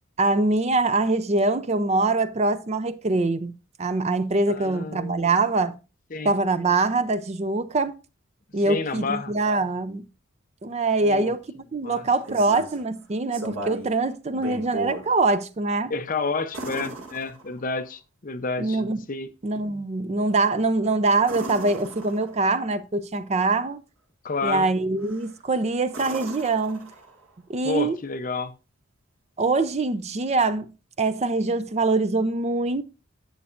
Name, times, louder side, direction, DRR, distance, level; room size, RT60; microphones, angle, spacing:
voice 1, 0.2-3.5 3.8-5.8 6.2-7.9 8.5-10.0 10.6-15.9 18.6-19.0 19.4-23.8 24.4-26.9 27.5-28.0 29.4-30.7 31.0-32.8, right 3 dB, 30° right, 0.5 m, -24 dB
voice 2, 4.5-5.3 6.1-6.3 8.7-9.4 11.0-11.3 11.8-12.1 15.9-18.8 19.1-19.3 24.2-24.7 27.6-28.6, left 4 dB, 40° left, 0.7 m, -30 dB
sound 1, 12.0-12.8 13.3-13.9 14.3-15.1 16.5-17.8 21.2-22.5 25.0-25.4 25.9-27.3 29.4-29.5, right 1 dB, 85° right, 2.1 m, -36 dB
11.0 x 7.2 x 2.5 m
head